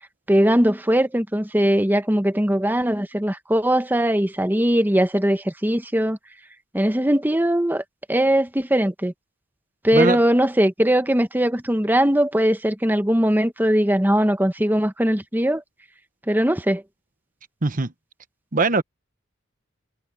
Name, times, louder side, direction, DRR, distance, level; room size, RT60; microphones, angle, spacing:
voice 1, 0.3-6.2 6.7-9.1 9.8-15.6 16.3-16.8, right 1 dB, 10° right, 1.1 m, -20 dB
voice 2, 17.6-17.9 18.5-18.8, right 3 dB, 45° right, 1.1 m, -20 dB
head